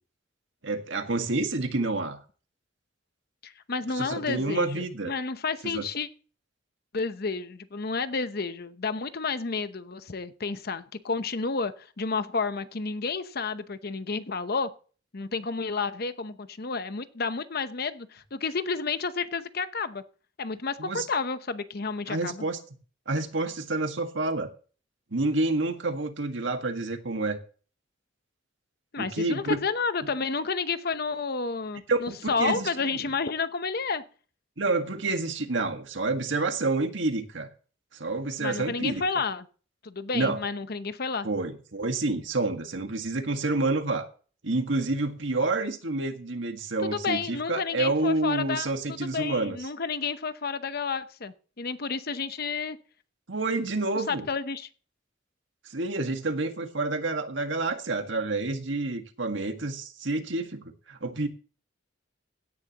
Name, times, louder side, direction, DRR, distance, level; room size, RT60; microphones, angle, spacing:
voice 1, 0.6-2.2 3.9-5.1 5.6-5.8 20.8-21.1 22.1-22.6 23.1-24.5 25.1-27.4 29.0-29.6 31.9-32.7 33.0-33.1 34.6-37.5 37.9-39.0 40.1-40.4 41.2-44.1 44.4-49.6 53.3-54.3 55.6-61.3, right 2 dB, 70° right, 1.7 m, -28 dB
voice 2, 3.4-6.1 6.9-14.7 15.1-20.0 20.4-22.4 28.9-34.0 38.4-39.5 39.8-41.3 46.8-48.7 49.0-52.8 54.1-54.7, left 4 dB, 50° left, 0.8 m, -31 dB
16.5 x 10.5 x 3.0 m
head